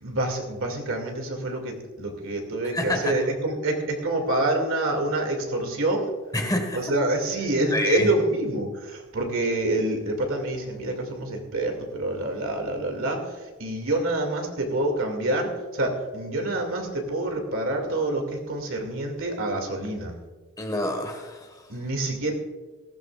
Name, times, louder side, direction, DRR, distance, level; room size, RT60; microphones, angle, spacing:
voice 1, 0.0-6.1 6.7-20.1 21.7-22.3, right 2 dB, 65° right, 3 dB, 2.5 m, -27 dB
voice 2, 2.6-3.1 6.3-6.9 7.7-8.1 20.6-21.7, left 1 dB, 15° left, 4 dB, 1.6 m, -27 dB
18.5 x 15.5 x 2.5 m, 1.3 s
head